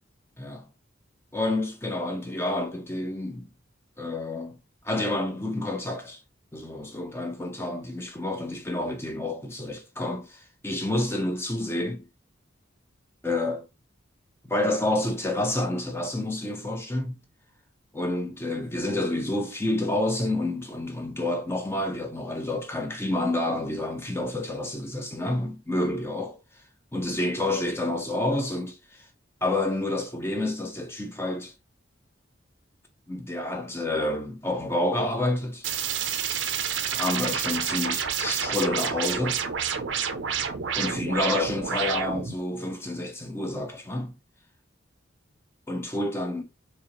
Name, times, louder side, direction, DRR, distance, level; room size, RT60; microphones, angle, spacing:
voice 1, 0.4-0.7 1.3-3.5 4.0-4.6 4.8-6.2 6.5-12.1 13.2-13.7 14.5-17.2 17.9-26.4 26.9-29.1 29.4-31.5 33.1-35.7 36.9-39.4 40.8-44.2 45.7-46.4, left 1 dB, 15° left, 0.6 m, -29 dB
sound 1, 35.6-42.4, right 7 dB, 70° right, 0.5 m, -29 dB
4.2 x 2.6 x 3.0 m
head